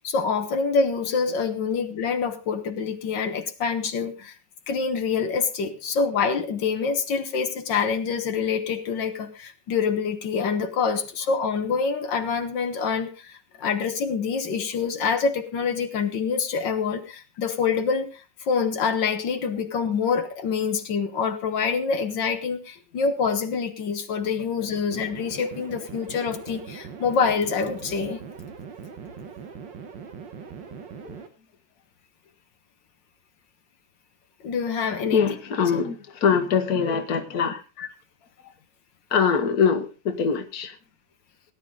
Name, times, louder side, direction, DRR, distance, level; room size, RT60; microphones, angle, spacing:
voice 1, 0.0-4.3 4.7-28.2 34.4-35.3, left 5 dB, 80° left, 7 dB, 1.9 m, -26 dB
sound 1, 24.9-31.3, right 6 dB, 90° right, 2.1 m, -41 dB
voice 2, 35.1-37.9 39.1-40.8, left 6 dB, 55° left, 8 dB, 1.8 m, -23 dB
18.0 x 10.5 x 3.7 m, 0.30 s
omnidirectional pair, 1.9 m